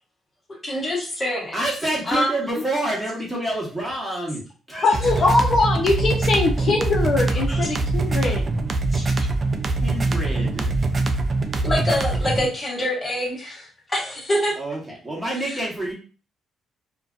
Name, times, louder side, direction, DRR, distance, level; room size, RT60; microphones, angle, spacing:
voice 1, 0.6-1.5 2.1-2.3 7.5-7.7 8.2-8.4 8.9-9.3 11.6-14.5 15.4-15.6, left 1 dB, 25° left, -3 dB, 1.1 m, -26 dB
voice 2, 1.5-4.4 4.7-5.4 9.7-10.7 14.6-15.9, right 1 dB, 5° right, -5 dB, 1.2 m, -28 dB
voice 3, 4.8-8.4, left 3 dB, 55° left, -1 dB, 0.5 m, -21 dB
sound 1, 4.9-12.5, right 2 dB, 40° right, 0.4 m, -23 dB
2.5 x 2.2 x 2.4 m, 0.36 s
cardioid pair, 90°, 0 cm